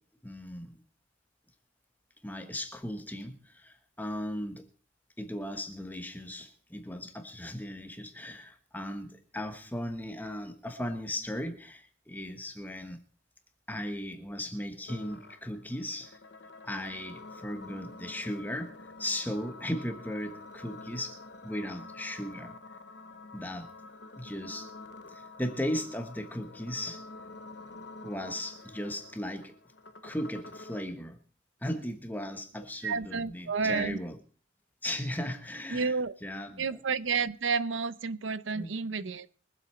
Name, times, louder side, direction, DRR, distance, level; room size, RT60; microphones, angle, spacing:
voice 1, 0.2-0.8 2.2-4.7 5.2-13.0 13.7-16.2 16.6-21.2 21.4-22.5 23.3-23.7 24.2-24.7 25.1-27.0 28.0-29.6 30.0-31.2 31.6-34.2 34.8-35.9 36.2-36.8 38.5-38.7, left 1 dB, 10° left, 1.2 m, -37 dB
sound 1, 14.9-30.9, left 3 dB, 60° left, 1.0 m, -48 dB
voice 2, 32.8-34.0 35.7-36.1 36.6-39.3, right 5 dB, 80° right, 0.7 m, -30 dB
23.5 x 8.0 x 4.3 m
head